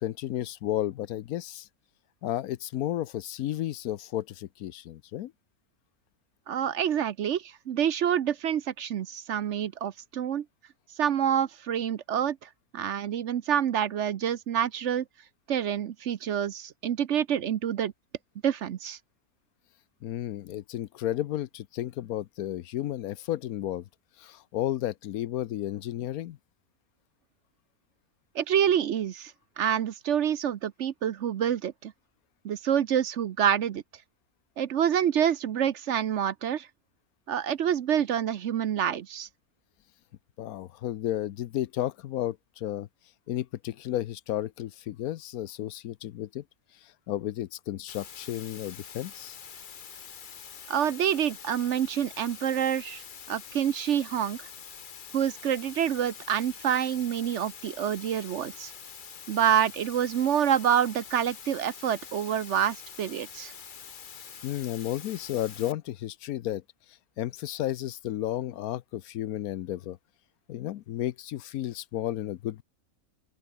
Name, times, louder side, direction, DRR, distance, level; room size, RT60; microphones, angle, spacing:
voice 1, 0.0-1.7 2.2-5.3 20.0-23.8 24.2-26.4 40.4-42.9 43.3-46.4 47.1-49.4 64.4-66.6 67.2-70.0 70.5-72.6, left 13 dB, 85° left, 1.1 m, -33 dB
voice 2, 6.5-10.4 11.0-15.0 15.5-17.9 18.4-19.0 28.3-31.9 32.4-33.8 34.6-36.7 37.3-39.3 50.7-53.0 53.3-54.4 55.1-58.7 59.3-63.5, right 9 dB, 60° right, 1.0 m, -27 dB
sound 1, 47.9-65.7, left 7 dB, 40° left, 0.9 m, -45 dB
open air
omnidirectional pair, 1.5 m